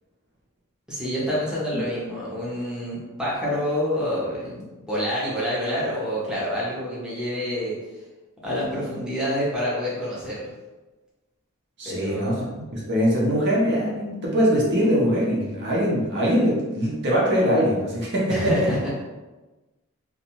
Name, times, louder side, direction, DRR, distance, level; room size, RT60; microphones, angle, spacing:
voice 1, 0.9-7.8 8.4-10.5 11.8-12.5 18.3-18.9, equal, 5° right, -8 dB, 0.7 m, -27 dB
voice 2, 11.8-18.7, equal, 50° right, -4 dB, 0.6 m, -22 dB
2.5 x 2.2 x 2.9 m, 1.1 s
head